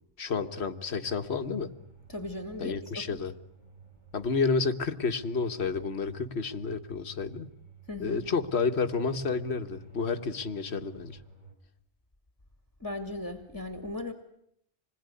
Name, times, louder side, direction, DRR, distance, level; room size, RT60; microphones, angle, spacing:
voice 1, 0.2-1.7 2.6-3.3 4.1-7.5 8.0-11.2, left 4 dB, 70° left, 9 dB, 1.6 m, -30 dB
sound 1, 0.6-11.5, right 7 dB, 40° right, 4.2 m, -53 dB
voice 2, 2.1-3.2 7.9-8.3 12.8-14.1, left 2 dB, 20° left, 7 dB, 2.2 m, -37 dB
27.0 x 21.0 x 9.8 m, 0.73 s
omnidirectional pair, 1.1 m